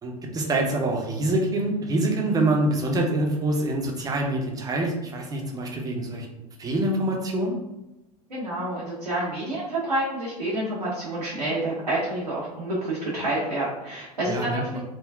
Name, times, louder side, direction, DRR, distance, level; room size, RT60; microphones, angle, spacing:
voice 1, 0.0-6.3 6.6-7.6 14.3-14.8, right 1 dB, 20° right, 1 dB, 0.6 m, -25 dB
voice 2, 8.3-14.8, right 1 dB, 85° right, -8 dB, 0.8 m, -28 dB
3.6 x 2.2 x 2.2 m, 0.97 s
figure-of-eight pair, 80°, 20 cm